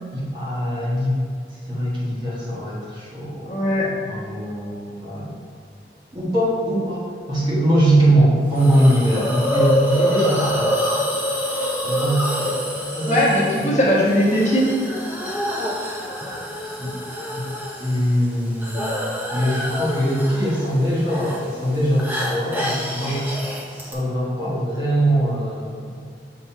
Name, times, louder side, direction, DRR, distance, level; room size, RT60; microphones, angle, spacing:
voice 1, 0.1-1.2 1.7-5.3 6.1-10.8 11.5-13.2 13.6-13.8 16.8-16.9 17.3-17.4 17.8-18.9 19.3-23.3 23.7-25.9, right 1 dB, 25° right, -7 dB, 1.4 m, -22 dB
voice 2, 3.5-3.9 13.1-14.7 23.0-23.1, equal, 40° left, -6 dB, 1.2 m, -19 dB
Hiss, 8.5-23.9, equal, 10° right, 0.8 m, -27 dB
7.0 x 3.3 x 4.3 m, 2.2 s
head